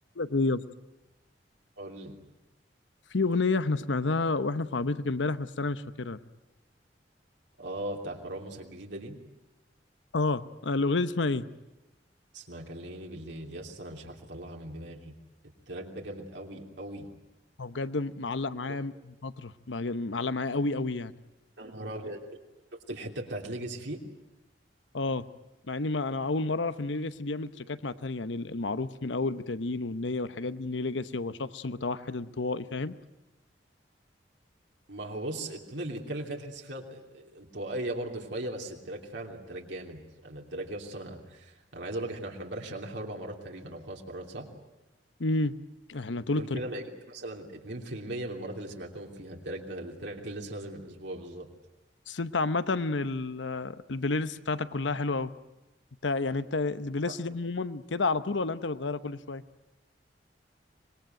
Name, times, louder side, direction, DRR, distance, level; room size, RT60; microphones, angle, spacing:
voice 1, 0.2-0.6 3.1-6.2 10.1-11.5 17.6-21.1 24.9-25.2 25.7-32.9 45.2-45.5 45.9-46.6 52.1-55.3 56.0-59.4, left 3 dB, 85° left, 13 dB, 0.9 m, -30 dB
voice 2, 1.8-2.1 7.6-9.2 12.3-15.1 15.7-17.1 18.7-18.8 21.6-22.2 22.9-24.0 34.9-44.5 46.4-51.5 57.1-57.2, right 1 dB, 75° right, 0 dB, 3.1 m, -38 dB
25.0 x 21.0 x 9.2 m, 1.0 s
head